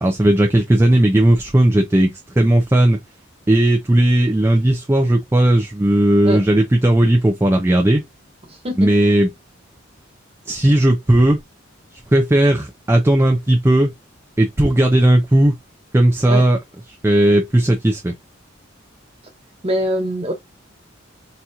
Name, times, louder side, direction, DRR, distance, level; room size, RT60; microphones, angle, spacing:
voice 1, 0.0-3.0 3.5-8.0 8.8-9.3 10.5-11.4 12.1-13.9 14.4-15.5 15.9-16.6 17.0-18.1, right 1 dB, 15° right, 0.4 m, -15 dB
voice 2, 8.5-8.9 16.3-16.4 19.6-20.3, equal, 30° right, 1.3 m, -23 dB
4.1 x 2.8 x 2.3 m
head